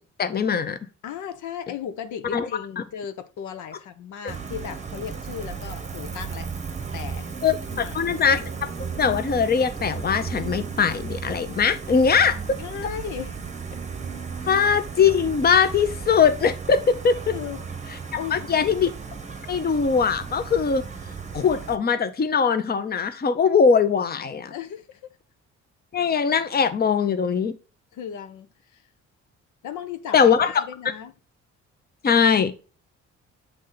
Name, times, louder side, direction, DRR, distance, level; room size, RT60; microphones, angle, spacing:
voice 1, 0.2-0.8 2.3-2.5 7.4-8.7 9.0-12.4 14.5-17.3 18.3-18.9 19.5-20.8 21.3-24.5 25.9-27.5 30.1-30.5 32.0-32.5, left 6 dB, 30° left, 0.7 m, -21 dB
voice 2, 1.0-6.5 6.9-7.3 7.7-8.2 12.6-13.4 13.7-13.8 14.4-14.5 17.3-17.7 18.2-18.7 24.5-25.1 27.9-28.9 29.6-31.1, left 8 dB, 80° left, 0.8 m, -36 dB
Gull seagull, 4.3-21.8, right 5 dB, 25° right, 0.9 m, -35 dB
7.3 x 3.3 x 3.9 m
cardioid pair, 90°, 30 cm